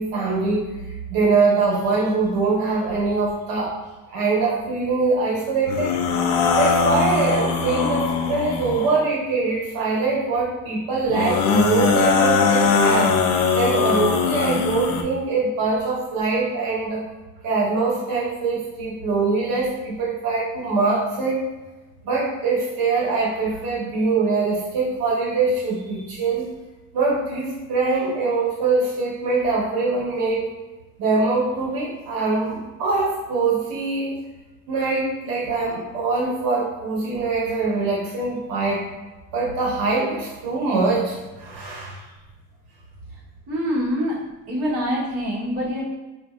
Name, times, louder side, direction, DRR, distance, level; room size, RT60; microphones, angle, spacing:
voice 1, 0.0-3.8 4.1-6.0 6.6-13.2 13.5-17.1 17.4-21.4 22.0-26.5 26.9-30.5 31.0-34.2 34.7-38.9 39.3-42.1, right 3 dB, 85° right, -4 dB, 1.0 m, -23 dB
sound 1, 5.7-9.1 11.1-15.0, left 5 dB, 85° left, 0.5 m, -21 dB
voice 2, 43.5-44.2 44.5-45.8, equal, 45° right, -7 dB, 1.1 m, -25 dB
4.2 x 2.5 x 2.4 m, 1.2 s
cardioid pair, 170°, 34 cm